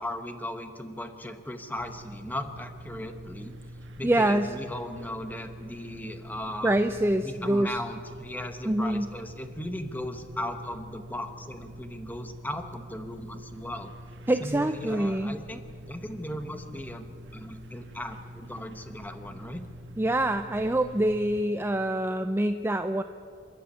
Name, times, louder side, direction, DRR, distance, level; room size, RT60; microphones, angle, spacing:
voice 1, 0.0-3.5 4.0-6.8 7.2-13.9 14.4-17.1 17.3-19.6, left 1 dB, 10° left, 7 dB, 1.3 m, -37 dB
sound 1, 1.8-21.4, equal, 75° right, 1.4 m, -45 dB
voice 2, 4.0-4.5 6.6-7.8 8.7-9.1 14.3-15.4 20.0-23.0, right 1 dB, 10° right, 8 dB, 0.5 m, -25 dB
27.0 x 11.5 x 8.5 m, 2.4 s
head